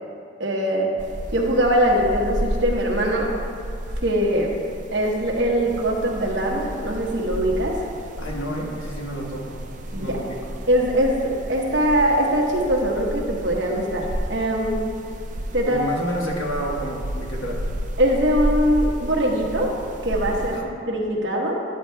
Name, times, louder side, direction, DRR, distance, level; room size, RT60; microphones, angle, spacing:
voice 1, 0.4-0.9 1.3-3.3 4.0-4.5 4.9-7.9 9.9-10.2 10.7-14.8 15.5-15.8 18.0-19.7 20.0-21.6, equal, 60° right, -2 dB, 1.1 m, -22 dB
sound 1, 1.0-20.6, right 1 dB, 40° right, 0.6 m, -32 dB
voice 2, 8.2-9.6 10.0-10.4 15.7-17.7 20.3-20.6, equal, 85° left, -2 dB, 1.4 m, -30 dB
9.7 x 9.5 x 2.3 m, 2.3 s
head